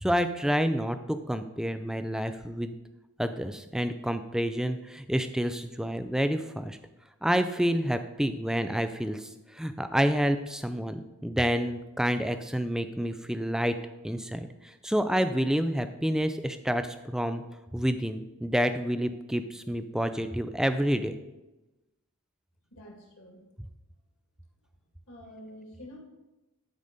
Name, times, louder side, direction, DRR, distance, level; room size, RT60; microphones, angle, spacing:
voice 1, 0.0-2.7 3.2-6.8 7.2-9.3 9.5-13.8 14.0-14.5 14.8-17.4 17.7-21.2, equal, 5° right, 9 dB, 0.4 m, -28 dB
voice 2, 22.7-23.4 25.1-26.0, equal, 65° left, 0 dB, 1.9 m, -47 dB
11.5 x 4.1 x 5.2 m, 1.0 s
head